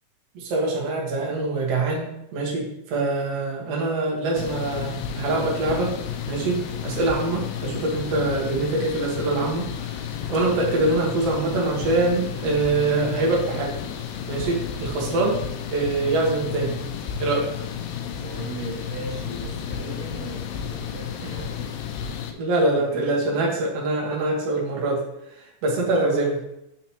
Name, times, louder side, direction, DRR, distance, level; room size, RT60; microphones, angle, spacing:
voice 1, 0.3-5.9 6.3-13.7 14.3-15.4 15.7-16.8 17.2-17.5 22.4-25.0 25.3-26.3, right 2 dB, 65° right, -3 dB, 1.5 m, -24 dB
sound 1, 4.4-22.3, left 8 dB, 85° left, 2.4 m, -32 dB
voice 2, 18.1-21.8 22.7-23.6 25.7-26.2, right 2 dB, 90° right, -3 dB, 1.2 m, -37 dB
7.3 x 5.8 x 2.9 m, 0.84 s
omnidirectional pair, 5.1 m